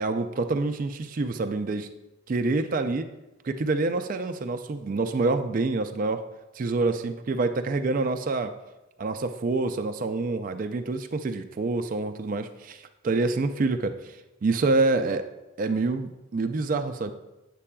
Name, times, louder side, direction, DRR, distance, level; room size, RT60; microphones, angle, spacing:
voice 1, 0.0-1.9 2.3-3.1 3.4-6.2 6.6-8.5 9.0-14.0 14.4-15.2 15.6-17.1, right 3 dB, 40° right, 8 dB, 0.3 m, -27 dB
8.5 x 7.5 x 2.2 m, 1.0 s
head